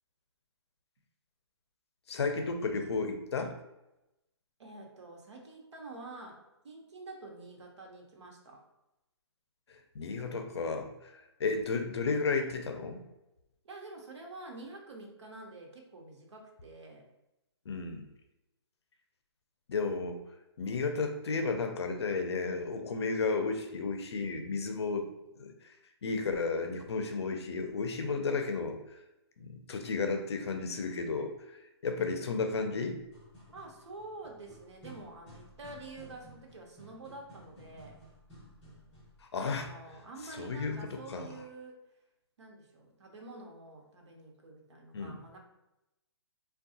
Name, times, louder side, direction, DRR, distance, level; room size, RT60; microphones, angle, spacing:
voice 1, 2.1-3.6 9.7-13.0 17.7-18.1 19.7-20.2 20.6-25.1 25.4-25.7 26.0-29.0 29.4-31.6 31.8-33.0 39.2-39.7 40.4-41.3 44.9-45.2, left 4 dB, 70° left, 6 dB, 0.5 m, -33 dB
voice 2, 4.6-6.4 6.6-8.6 13.6-17.0 33.5-38.0 39.4-41.8 42.4-45.4, right 2 dB, 80° right, 1 dB, 0.8 m, -48 dB
sound 1, 33.0-39.2, equal, 10° left, 0.9 m, -55 dB
3.5 x 2.2 x 2.7 m, 0.92 s
hypercardioid pair, 170°, 14 cm